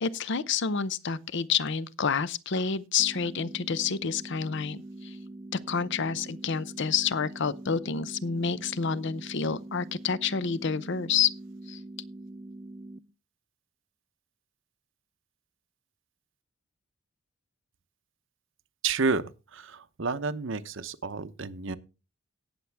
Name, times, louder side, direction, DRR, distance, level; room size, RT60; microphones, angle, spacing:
voice 1, 0.0-5.2 5.7-11.3 11.7-11.8, left 6 dB, 55° left, 0.6 m, -29 dB
sound 1, 3.0-13.0, right 2 dB, 10° right, 0.6 m, -44 dB
voice 2, 18.8-19.2 19.5-21.8, right 4 dB, 60° right, 0.8 m, -30 dB
18.0 x 6.9 x 3.4 m
head